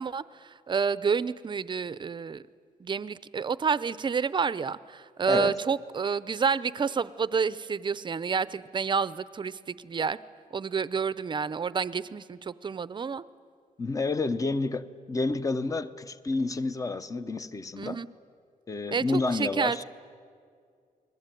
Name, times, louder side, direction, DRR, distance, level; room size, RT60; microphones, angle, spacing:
voice 1, 0.0-2.4 2.8-10.2 10.5-13.2 17.8-18.1 18.9-19.8, right 6 dB, 30° right, 16 dB, 0.6 m, -29 dB
voice 2, 5.3-5.6 13.8-18.0 18.7-19.8, left 3 dB, 20° left, 13 dB, 0.9 m, -29 dB
30.0 x 21.0 x 9.2 m, 2.3 s
wide cardioid pair, 145°, 15 cm